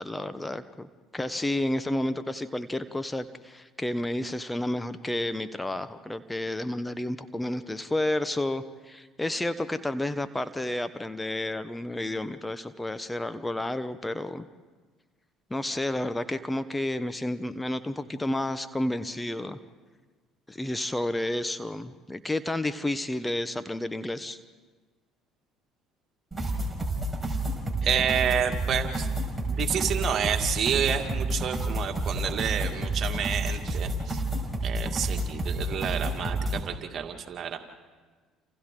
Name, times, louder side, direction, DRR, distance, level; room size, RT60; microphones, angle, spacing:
voice 1, 0.0-14.5 15.5-19.6 20.5-24.4, left 1 dB, 10° left, 12 dB, 1.0 m, -31 dB
sound 1, 26.3-36.6, right 1 dB, 10° right, 4.9 m, -30 dB
voice 2, 27.8-29.1 29.5-34.2 34.6-37.6, right 8 dB, 50° right, 4 dB, 2.2 m, -29 dB
29.5 x 27.5 x 3.9 m, 1.4 s
hypercardioid pair, 65°, 0 cm